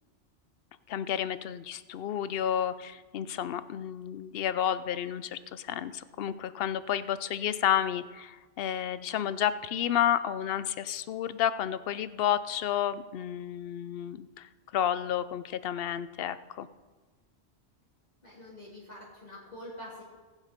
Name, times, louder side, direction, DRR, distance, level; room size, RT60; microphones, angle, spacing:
voice 1, 0.9-16.7, left 10 dB, 65° left, 14 dB, 0.8 m, -31 dB
voice 2, 18.2-20.0, left 1 dB, 40° left, -7 dB, 3.1 m, -45 dB
19.5 x 7.4 x 5.2 m, 1.3 s
omnidirectional pair, 1.1 m